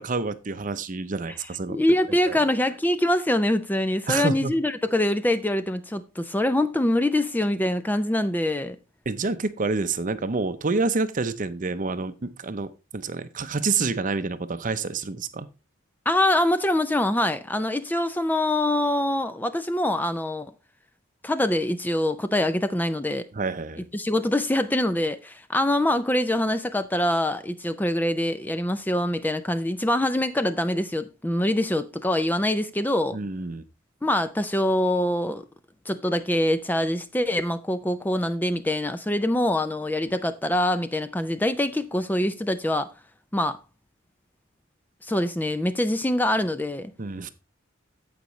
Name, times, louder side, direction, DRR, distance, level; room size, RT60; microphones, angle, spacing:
voice 1, 0.0-1.8 2.1-2.4 4.1-4.5 9.1-15.5 23.3-23.8 33.1-33.6 47.0-47.3, right 3 dB, 40° right, 0.7 m, -28 dB
voice 2, 1.7-8.8 16.1-20.5 21.2-23.2 23.9-33.2 34.0-35.4 35.9-42.9 43.3-43.6 45.0-46.9, left 1 dB, 10° left, 0.4 m, -24 dB
15.5 x 5.1 x 3.1 m
head